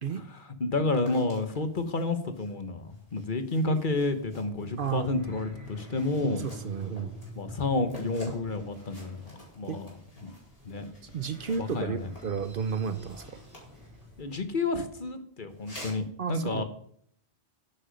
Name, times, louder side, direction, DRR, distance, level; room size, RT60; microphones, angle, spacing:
voice 1, 0.1-6.4 7.4-9.2 9.6-9.9 10.2-10.3 10.6-10.8 11.6-12.1 14.2-16.6, left 2 dB, 50° left, 9 dB, 1.3 m, -30 dB
sound 1, 1.0-14.5 15.5-16.1, equal, 35° left, 4.7 m, -51 dB
sound 2, 3.9-14.4, equal, 15° right, 3.4 m, -47 dB
voice 2, 4.8-5.1 6.4-7.1 9.7-9.8 11.1-13.4 16.2-16.6, right 6 dB, 55° right, 12 dB, 0.8 m, -32 dB
9.9 x 8.9 x 5.2 m, 0.63 s
omnidirectional pair, 1.1 m